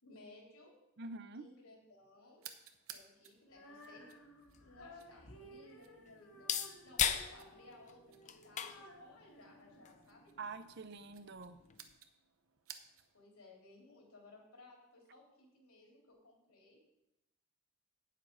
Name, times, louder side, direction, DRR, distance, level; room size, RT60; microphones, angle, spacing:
voice 1, 0.0-0.7 1.3-2.5 2.9-4.1 4.6-6.5 6.8-10.3 13.1-16.8, left 2 dB, 90° left, -1 dB, 3.4 m, -59 dB
voice 2, 1.0-1.5 10.4-11.6, right 3 dB, 50° right, 12 dB, 0.5 m, -46 dB
sound 1, 2.4-13.3, right 9 dB, 75° right, 0.9 m, -59 dB
Female singing, 3.4-10.5, equal, 70° left, 1.9 m, -58 dB
sound 2, 4.0-12.0, left 8 dB, 35° left, 0.5 m, -42 dB
8.9 x 7.4 x 5.5 m, 0.89 s
head